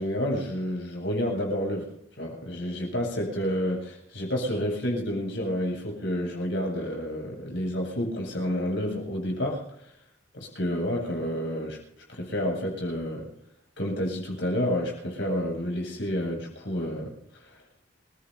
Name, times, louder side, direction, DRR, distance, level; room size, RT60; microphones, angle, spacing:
voice 1, 0.0-1.9 2.2-9.9 10.3-11.8 12.1-13.3 13.8-17.1 17.4-17.6, equal, 75° left, -1 dB, 7.7 m, -29 dB
28.5 x 16.5 x 2.8 m, 0.71 s
head